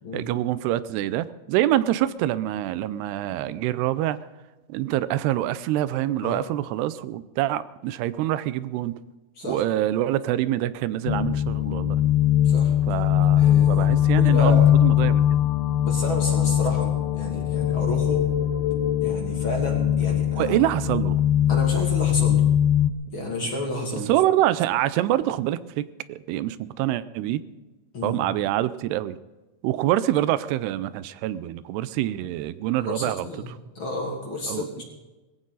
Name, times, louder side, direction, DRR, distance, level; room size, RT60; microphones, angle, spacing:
voice 1, 0.1-4.2 4.7-8.9 9.4-12.0 12.9-15.4 18.0-18.1 20.4-21.2 24.1-27.4 28.0-29.2 29.6-33.6 34.5-34.8, right 13 dB, 90° right, 15 dB, 2.7 m, -26 dB
sound 1, 11.1-22.9, left 11 dB, 80° left, 2.6 m, -21 dB
voice 2, 13.4-14.7 15.8-18.3 19.0-20.5 21.5-22.4 23.1-24.1 27.9-28.2 32.8-33.5 33.8-34.8, left 1 dB, 35° left, 0 dB, 2.7 m, -31 dB
20.5 x 15.5 x 4.0 m, 1.1 s
omnidirectional pair, 4.6 m